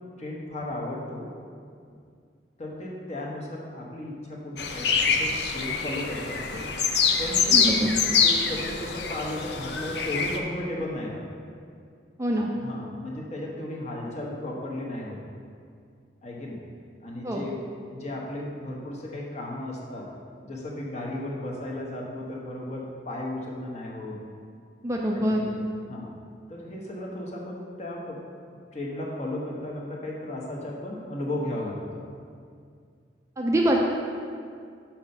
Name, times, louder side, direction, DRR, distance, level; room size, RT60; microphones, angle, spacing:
voice 1, 0.2-1.3 2.6-6.7 7.2-7.6 8.2-11.2 12.6-15.2 16.2-16.6 17.0-17.6 17.9-20.1 20.4-24.2 25.1-25.5 25.9-26.1 26.5-28.2 28.7-32.0, left 1 dB, 35° left, -3 dB, 1.1 m, -35 dB
sound 1, 4.6-10.4, left 5 dB, 60° left, 0.6 m, -25 dB
voice 2, 7.5-7.9 12.2-12.5 17.2-17.4 24.8-25.4 33.4-33.8, right 1 dB, 15° right, -1 dB, 0.4 m, -24 dB
6.0 x 5.7 x 5.4 m, 2.3 s
head